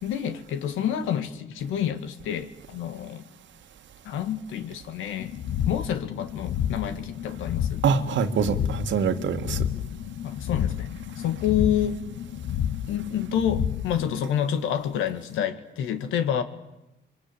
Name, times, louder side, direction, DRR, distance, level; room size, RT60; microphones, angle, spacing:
voice 1, 0.0-3.2 4.1-5.3 5.7-7.8 10.2-10.9 11.2-12.0 12.9-16.4, left 9 dB, 90° left, 1.9 m, -28 dB
sound 1, 5.2-14.2, left 9 dB, 70° left, 1.1 m, -31 dB
voice 2, 7.8-9.6, right 6 dB, 70° right, 1.8 m, -24 dB
25.5 x 23.5 x 8.6 m
cardioid pair, 90°, 20 cm